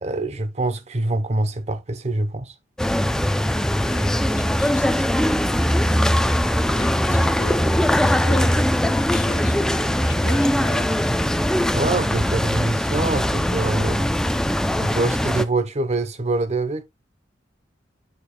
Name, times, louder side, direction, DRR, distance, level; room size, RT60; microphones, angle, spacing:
voice 1, 0.0-2.5 11.6-14.1 14.8-16.8, right 2 dB, 40° right, 0.8 m, -25 dB
sound 1, 2.8-15.4, equal, 5° left, 0.4 m, -21 dB
voice 2, 3.8-6.0 6.7-8.7 9.1-11.3, left 3 dB, 90° left, 1.1 m, -38 dB
8.7 x 6.6 x 2.2 m
head